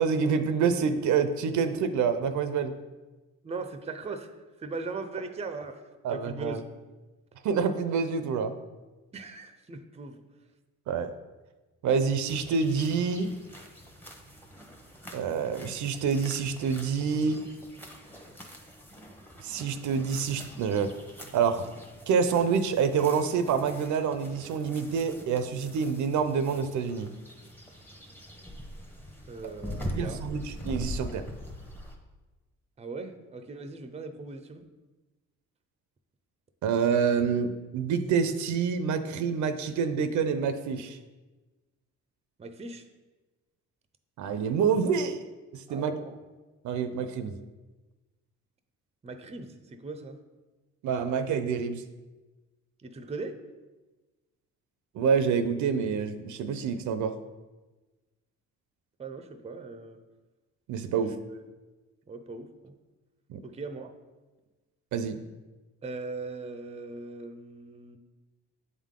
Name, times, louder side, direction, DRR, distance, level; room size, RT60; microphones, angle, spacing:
voice 1, 0.0-2.7 6.0-6.6 7.4-8.5 10.9-11.1 11.8-13.3 15.1-17.4 19.4-20.9 21.3-21.7 22.1-27.1 30.0-31.2 36.6-41.0 44.2-45.2 45.5-45.9 46.6-47.3 50.8-51.8 54.9-57.1 60.7-61.1 63.3-63.4 64.9-65.2, right 6 dB, 75° right, 10 dB, 0.5 m, -27 dB
voice 2, 3.4-4.3 4.6-5.8 6.1-6.6 9.1-10.2 29.3-30.2 32.8-34.6 42.4-42.9 45.7-46.2 49.0-50.2 52.8-53.4 59.0-60.0 61.0-61.5 62.1-62.7 63.4-63.9 65.8-68.0, right 3 dB, 20° right, 8 dB, 0.5 m, -39 dB
sound 1, 12.3-31.9, equal, 5° left, 0.9 m, -43 dB
8.0 x 3.7 x 3.7 m, 1.2 s
cardioid pair, 90°, 30 cm